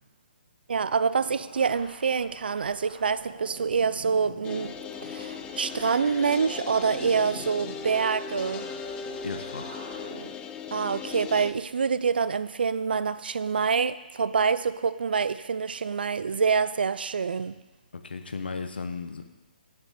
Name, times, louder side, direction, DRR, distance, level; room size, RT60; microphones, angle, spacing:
voice 1, 0.7-4.7 5.0-8.7 10.7-17.5, right 5 dB, 70° right, 15 dB, 0.5 m, -26 dB
sound 1, 1.1-10.3, right 3 dB, 55° right, 2.5 m, -46 dB
sound 2, 4.4-11.5, left 7 dB, 15° left, 0.4 m, -38 dB
voice 2, 9.2-9.8 17.9-19.3, left 4 dB, 75° left, 8 dB, 1.0 m, -35 dB
7.0 x 6.6 x 7.0 m, 1.1 s
figure-of-eight pair, 140°, 5 cm